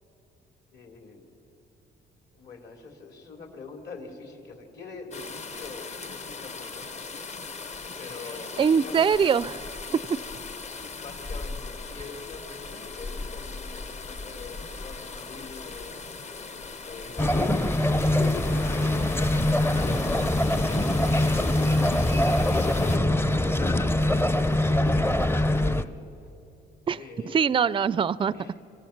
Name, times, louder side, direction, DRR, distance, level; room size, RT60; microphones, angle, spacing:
voice 1, 0.7-1.2 2.3-7.4 8.0-9.3 9.8-10.3 11.0-16.0 16.8-20.2 20.4-21.8 22.8-25.9 26.9-27.6 28.3-28.6, left 4 dB, 60° left, 2 dB, 3.5 m, -44 dB
sound 1, 5.1-23.0, left 4 dB, 35° left, 0.9 m, -39 dB
voice 2, 8.6-9.7 26.9-27.0 27.3-28.3, right 7 dB, 25° right, 19 dB, 0.4 m, -22 dB
sound 2, 17.2-25.8, left 1 dB, 10° left, 0.6 m, -23 dB
25.0 x 18.0 x 6.0 m, 2.8 s
cardioid pair, 90°, 20 cm